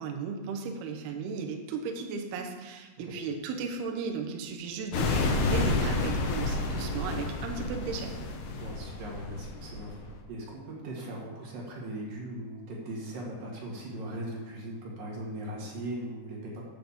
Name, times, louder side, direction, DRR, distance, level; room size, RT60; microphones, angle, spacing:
voice 1, 0.0-8.1, right 5 dB, 75° right, 3 dB, 2.4 m, -35 dB
sound 1, 4.9-10.2, left 3 dB, 75° left, 3.0 m, -30 dB
voice 2, 8.6-16.6, right 1 dB, 55° right, -3 dB, 2.9 m, -39 dB
8.9 x 5.8 x 7.2 m, 1.3 s
omnidirectional pair, 5.8 m